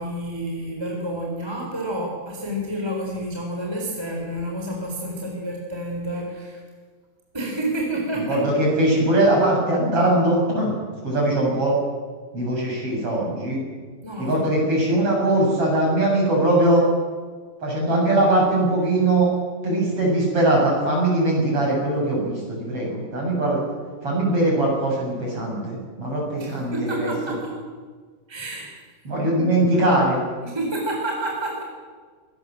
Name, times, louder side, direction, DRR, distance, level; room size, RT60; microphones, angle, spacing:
voice 1, 0.0-6.6 7.3-8.4 9.1-9.2 14.0-14.8 26.4-27.6 28.3-28.8 30.4-31.6, right 1 dB, 5° right, -1 dB, 4.0 m, -29 dB
voice 2, 8.3-10.7 11.0-11.8 12.3-13.6 14.2-16.8 17.6-19.3 19.6-23.7 24.0-27.1 29.0-30.2, right 1 dB, 35° right, -2 dB, 8.1 m, -21 dB
24.5 x 20.0 x 7.7 m, 1.5 s
omnidirectional pair, 4.7 m